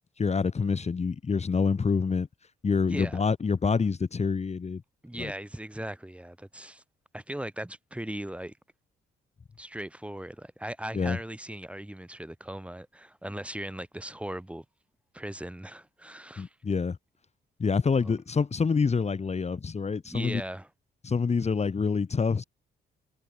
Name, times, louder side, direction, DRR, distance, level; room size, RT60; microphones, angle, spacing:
voice 1, 0.2-2.3 2.6-4.8 5.2-5.3 10.9-11.2 16.4-17.0 17.6-20.4 21.0-22.4, left 5 dB, 35° left, 2.7 m, -26 dB
voice 2, 5.0-6.8 7.1-8.5 9.6-14.6 15.1-16.5 18.0-18.1 20.0-20.7, right 1 dB, 5° right, 3.9 m, -38 dB
cardioid pair, 90°, 20 cm